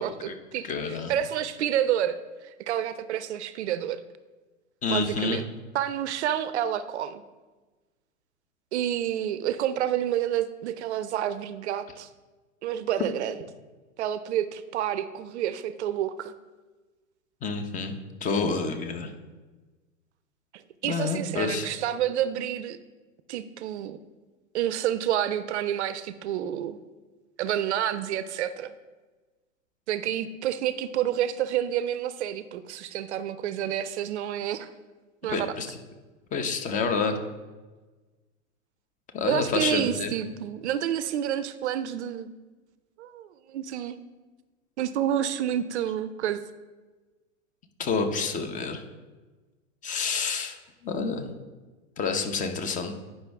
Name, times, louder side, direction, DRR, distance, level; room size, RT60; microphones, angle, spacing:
voice 1, 0.0-4.0 4.9-5.5 5.7-7.2 8.7-12.1 12.6-13.4 14.0-16.3 20.8-22.8 23.3-24.0 24.5-26.8 27.4-28.7 29.9-34.7 35.2-35.6 39.3-42.3 43.0-44.0 44.8-46.4, right 10 dB, 60° right, 14 dB, 0.5 m, -29 dB
voice 2, 0.6-1.1 4.8-5.4 17.4-19.1 20.9-21.7 35.3-35.7 36.3-37.2 39.1-40.1 47.8-48.8 49.8-50.6 50.8-51.3 52.0-52.9, left 4 dB, 20° left, 6 dB, 0.8 m, -28 dB
9.7 x 5.4 x 3.5 m, 1.3 s
hypercardioid pair, 110°, 40 cm